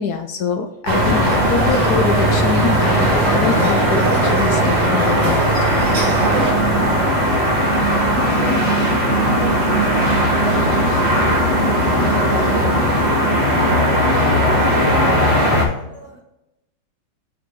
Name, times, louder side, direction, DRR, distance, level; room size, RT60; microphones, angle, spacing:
voice 1, 0.0-6.2, left 6 dB, 70° left, 7 dB, 1.0 m, -24 dB
sound 1, 0.9-15.7, equal, 65° right, 2.1 m, -17 dB
sound 2, 1.2-6.5, right 3 dB, 45° right, 1.6 m, -24 dB
voice 2, 15.1-16.2, left 1 dB, 10° left, -2 dB, 1.4 m, -42 dB
5.3 x 5.0 x 4.5 m, 0.89 s
omnidirectional pair, 2.0 m